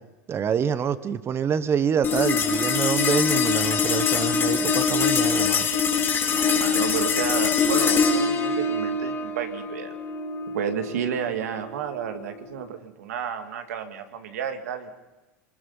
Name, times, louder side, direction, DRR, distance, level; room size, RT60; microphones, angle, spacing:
voice 1, 0.3-5.7, right 7 dB, 30° right, 14 dB, 1.2 m, -26 dB
sound 1, 2.0-12.6, left 5 dB, 30° left, 4.0 m, -24 dB
voice 2, 6.3-9.9 10.5-14.9, right 8 dB, 80° right, 7 dB, 2.0 m, -31 dB
24.5 x 21.0 x 5.6 m, 1.1 s
hypercardioid pair, 105°, 8 cm